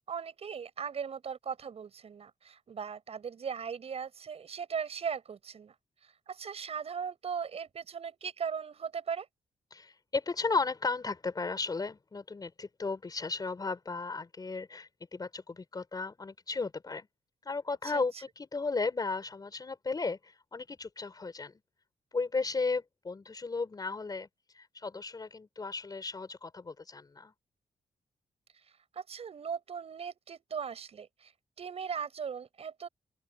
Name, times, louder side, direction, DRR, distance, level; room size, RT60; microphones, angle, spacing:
voice 1, 0.1-5.8 6.3-9.3 17.8-18.0 28.9-31.3 31.6-32.9, right 6 dB, 55° right, 7.5 m, -38 dB
voice 2, 9.7-17.1 17.5-21.5 22.1-24.3 24.5-27.3, left 4 dB, 30° left, 5.2 m, -35 dB
open air
cardioid pair, 100°, 12 cm